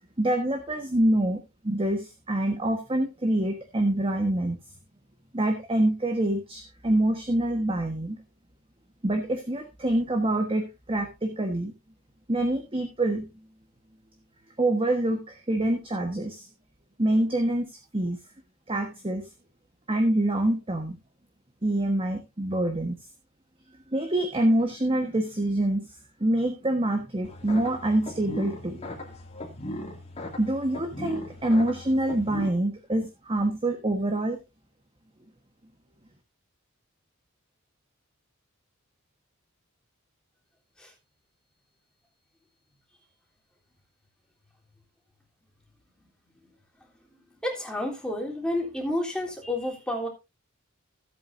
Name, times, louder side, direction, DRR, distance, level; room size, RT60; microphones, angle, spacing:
voice 1, 0.2-4.6 5.3-8.2 9.0-11.7 12.3-13.5 14.6-16.5 17.0-18.2 18.7-19.3 19.9-21.0 21.6-23.0 23.9-25.9 26.2-28.9 30.4-34.4, right 1 dB, 25° right, 5 dB, 1.4 m, -26 dB
sound 1, 27.2-32.5, left 1 dB, 30° left, 2.6 m, -38 dB
voice 2, 47.4-50.1, left 1 dB, 5° left, -2 dB, 3.5 m, -30 dB
16.5 x 8.4 x 2.7 m, 0.25 s
head